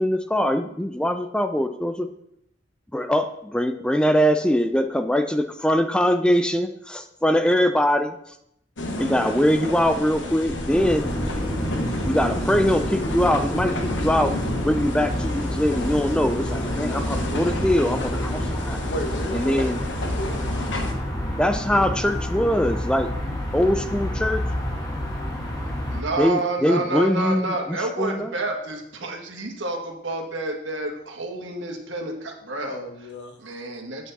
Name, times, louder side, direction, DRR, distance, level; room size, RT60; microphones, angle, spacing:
voice 1, 0.0-2.1 2.9-8.2 9.0-11.1 12.0-18.8 19.3-19.8 21.3-23.1 23.5-24.4 26.2-27.5 28.0-28.3, equal, 5° left, 8 dB, 0.4 m, -22 dB
sound 1, 8.8-20.9, left 1 dB, 80° left, 1.2 m, -31 dB
sound 2, 10.7-26.0, equal, 20° left, 1.5 m, -28 dB
voice 2, 18.9-19.6 20.0-20.4 21.7-21.9 32.6-33.4, equal, 65° left, 5 dB, 1.3 m, -33 dB
voice 3, 25.9-32.8 33.4-34.1, right 2 dB, 90° right, 2 dB, 1.7 m, -29 dB
8.4 x 8.1 x 4.1 m, 0.76 s
head